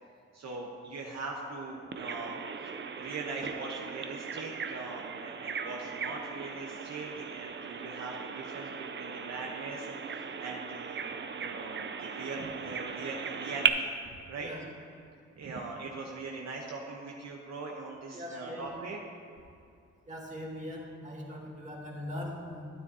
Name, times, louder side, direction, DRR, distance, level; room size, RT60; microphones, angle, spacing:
voice 1, 0.3-2.3 3.0-13.9 14.3-14.5 15.4-19.0, right 3 dB, 65° right, -2 dB, 1.0 m, -41 dB
Bird vocalization bird call bird song, 1.9-13.7, right 6 dB, 40° right, 0.6 m, -37 dB
voice 2, 18.1-18.7 20.1-22.7, left 1 dB, 25° right, -3 dB, 2.0 m, -40 dB
12.5 x 9.5 x 2.8 m, 2.5 s
cardioid pair, 80°, 29 cm